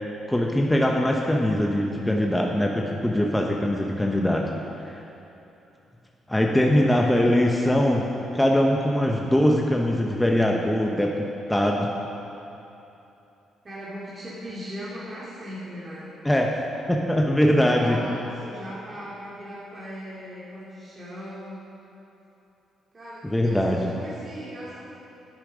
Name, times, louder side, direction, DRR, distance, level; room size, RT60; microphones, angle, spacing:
voice 1, 0.3-4.5 4.8-5.0 6.3-8.1 8.3-11.9 16.2-16.5 16.9-18.0 23.2-23.9, left 1 dB, 5° left, 0 dB, 0.8 m, -22 dB
voice 2, 13.6-16.2 17.6-21.6 22.9-24.8, equal, 30° right, -8 dB, 2.4 m, -39 dB
10.5 x 9.0 x 5.1 m, 2.9 s
cardioid pair, 90°, 0 cm